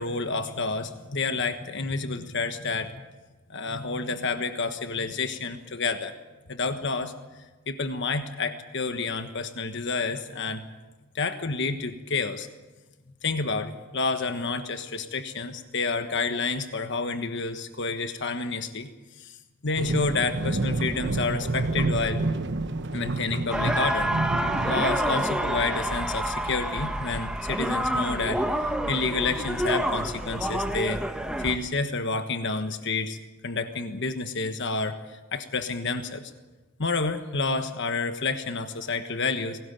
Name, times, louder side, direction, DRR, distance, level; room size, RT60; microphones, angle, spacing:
voice 1, 0.0-3.0 3.5-6.1 6.5-7.1 7.7-10.6 11.1-12.5 13.2-18.9 19.2-19.4 19.6-22.2 22.9-24.1 24.6-31.0 31.4-33.2 33.4-36.3 36.8-39.6, left 4 dB, 55° left, 8 dB, 1.3 m, -29 dB
sound 1, 19.8-24.8, right 2 dB, 50° right, 1.1 m, -28 dB
sound 2, 23.5-31.6, right 1 dB, 5° right, 1.3 m, -28 dB
20.5 x 18.5 x 9.1 m, 1.2 s
head